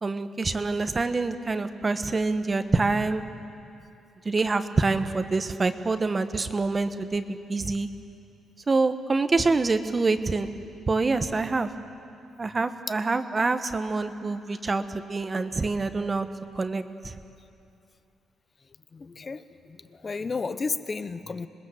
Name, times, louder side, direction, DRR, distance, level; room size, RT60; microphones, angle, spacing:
voice 1, 0.0-3.2 4.2-7.9 8.7-10.5 10.9-11.7 12.4-16.3 16.6-17.1, right 3 dB, 30° right, 9 dB, 1.2 m, -26 dB
voice 2, 18.9-21.5, left 4 dB, 35° left, 12 dB, 1.1 m, -33 dB
27.0 x 20.5 x 8.0 m, 2.7 s
cardioid pair, 90°, 0 cm